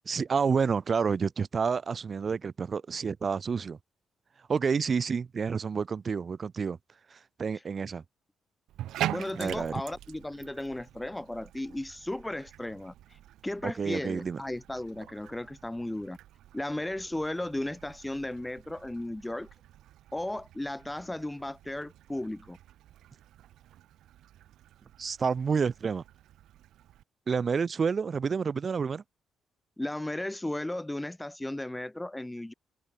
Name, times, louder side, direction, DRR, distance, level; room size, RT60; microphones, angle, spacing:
voice 1, 0.1-3.8 4.5-6.8 7.1-8.0 9.3-9.8 13.6-14.4 25.0-26.0 27.3-29.0, right 5 dB, 45° right, 2.8 m, -29 dB
Bathtub (filling or washing), 8.7-27.0, right 13 dB, 80° right, 1.7 m, -44 dB
voice 2, 9.1-12.9 13.4-16.2 16.5-19.5 20.1-22.6 29.8-32.5, left 1 dB, 10° left, 1.5 m, -35 dB
supercardioid pair, 70°, 0 cm